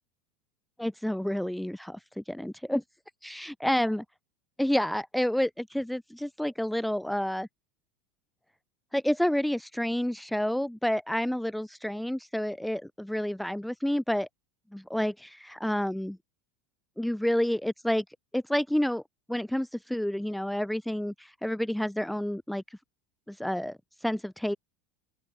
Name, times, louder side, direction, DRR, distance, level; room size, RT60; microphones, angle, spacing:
voice 1, 0.8-2.8 3.2-4.0 4.6-7.5 8.9-14.3 14.7-16.2 17.0-18.0 18.3-19.0 19.3-22.6 23.3-24.6, equal, ahead, 0.5 m, -29 dB
open air
supercardioid pair, 105°, 2 cm